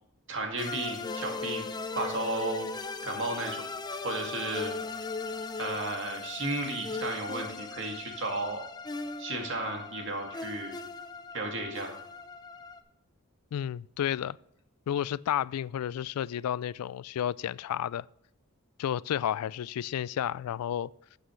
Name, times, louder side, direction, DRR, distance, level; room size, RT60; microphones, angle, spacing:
voice 1, 0.3-1.7 2.0-2.7 3.0-3.6 4.0-4.7 5.6-8.6 9.2-10.7 11.3-12.0, right 2 dB, 55° right, 2.3 m, -33 dB
sound 1, 0.6-12.8, left 4 dB, 20° left, 0.5 m, -38 dB
voice 2, 13.5-14.4 14.9-18.1 18.8-20.9, left 10 dB, 85° left, 0.3 m, -31 dB
12.5 x 8.3 x 3.2 m
head